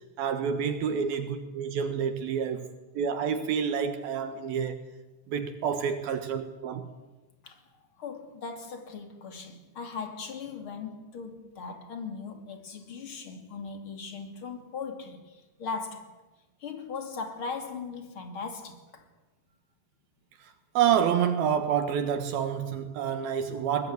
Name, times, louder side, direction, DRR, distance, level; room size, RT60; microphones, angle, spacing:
voice 1, 0.2-2.7 3.0-4.8 5.3-6.9 20.7-23.9, right 8 dB, 70° right, 3.0 m, -28 dB
voice 2, 8.0-16.1 16.6-19.1, left 5 dB, 35° left, 3.2 m, -39 dB
22.0 x 21.0 x 9.7 m
omnidirectional pair, 4.7 m